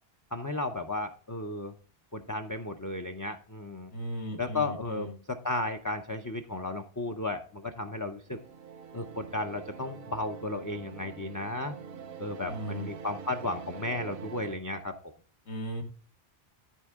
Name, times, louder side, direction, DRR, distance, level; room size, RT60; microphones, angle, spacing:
voice 1, 0.3-1.7 2.1-3.9 4.4-8.4 8.9-11.8 12.2-15.0, left 2 dB, 25° left, 7 dB, 0.4 m, -34 dB
voice 2, 3.9-5.2 12.5-12.9 15.5-15.8, equal, 80° left, 3 dB, 1.9 m, -37 dB
sound 1, 8.3-14.6, right 7 dB, 65° right, 0.9 m, -45 dB
13.0 x 4.5 x 3.6 m, 0.42 s
omnidirectional pair, 1.1 m